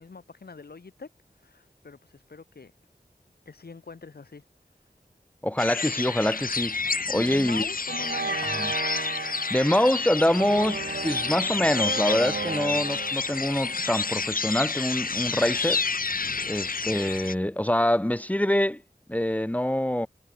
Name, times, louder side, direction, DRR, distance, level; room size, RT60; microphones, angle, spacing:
voice 1, 0.0-2.7 3.4-4.4 6.9-8.6, left 4 dB, 85° left, 1.6 m, -43 dB
voice 2, 5.4-6.8 7.1-7.7 8.6-8.7 9.5-15.8 16.5-18.8 19.1-20.1, left 1 dB, 10° left, 0.9 m, -25 dB
sound 1, 5.6-17.3, left 4 dB, 65° left, 0.9 m, -30 dB
sound 2, 7.1-7.4 7.9-14.7, right 5 dB, 75° right, 0.9 m, -35 dB
wide cardioid pair, 55°, 16 cm